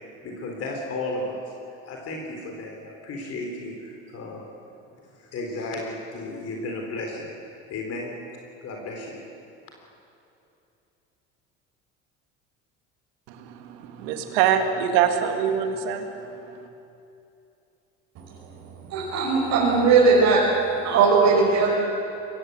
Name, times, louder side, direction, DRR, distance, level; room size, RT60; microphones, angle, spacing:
voice 1, 0.2-1.5 1.9-4.5 5.1-7.3 7.7-8.2 8.6-9.3, left 2 dB, 55° left, 1 dB, 3.9 m, -34 dB
voice 2, 13.3-16.1, right 8 dB, 85° right, 5 dB, 2.3 m, -24 dB
voice 3, 18.9-20.4 20.8-21.7, right 4 dB, 65° right, -5 dB, 5.4 m, -18 dB
23.0 x 18.0 x 8.1 m, 2.7 s
supercardioid pair, 95°, 30 cm